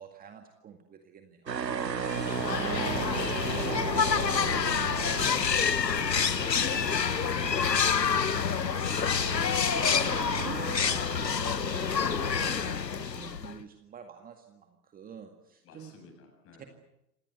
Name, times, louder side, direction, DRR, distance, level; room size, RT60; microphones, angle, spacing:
voice 1, 0.0-1.6 2.4-7.5 8.0-15.9 16.6-16.7, right 7 dB, 15° right, 6 dB, 2.0 m, -46 dB
sound 1, 1.5-12.1, right 7 dB, 90° right, 0.9 m, -36 dB
voice 2, 1.6-2.7 15.6-16.7, left 3 dB, 25° left, 6 dB, 7.7 m, -53 dB
sound 2, 2.0-13.6, left 7 dB, 80° left, 1.3 m, -28 dB
27.0 x 19.0 x 8.3 m, 0.84 s
figure-of-eight pair, 110°, 49 cm